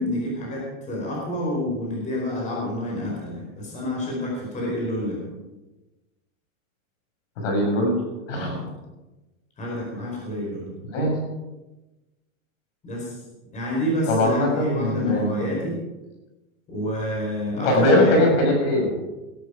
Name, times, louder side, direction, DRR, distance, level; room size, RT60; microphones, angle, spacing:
voice 1, 0.0-5.2 8.3-8.7 9.6-10.7 12.8-13.2 13.5-15.8 16.7-18.3, left 1 dB, 15° left, -3 dB, 4.8 m, -28 dB
voice 2, 7.4-8.0 8.3-8.6 10.9-11.2 14.0-15.5 17.6-18.9, left 1 dB, 60° left, 1 dB, 6.9 m, -20 dB
18.5 x 12.5 x 5.1 m, 1.1 s
supercardioid pair, 165°, 43 cm